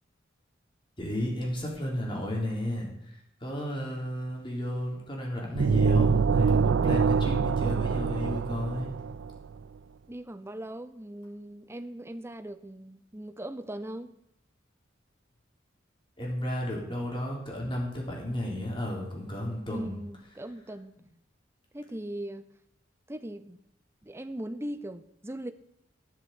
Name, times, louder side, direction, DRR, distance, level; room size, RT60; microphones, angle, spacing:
voice 1, 1.0-9.1 16.2-20.0, equal, 25° left, -1 dB, 3.7 m, -33 dB
sound 1, 5.5-9.4, right 5 dB, 80° right, 0.4 m, -25 dB
voice 2, 10.1-14.2 19.7-20.9 21.7-22.5 23.1-23.6 24.0-25.5, right 1 dB, 15° right, 11 dB, 0.7 m, -39 dB
11.0 x 7.6 x 8.1 m, 0.80 s
head